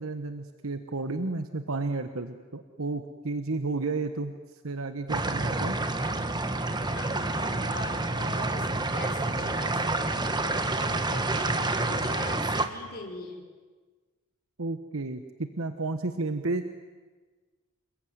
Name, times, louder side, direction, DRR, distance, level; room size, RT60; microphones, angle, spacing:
voice 1, 0.0-5.8 14.6-16.6, right 3 dB, 65° right, 8 dB, 1.2 m, -32 dB
sound 1, 5.1-12.7, right 2 dB, 20° right, 1.4 m, -28 dB
voice 2, 6.9-13.4, left 2 dB, 45° left, 0 dB, 5.2 m, -42 dB
27.5 x 21.5 x 9.5 m, 1.4 s
head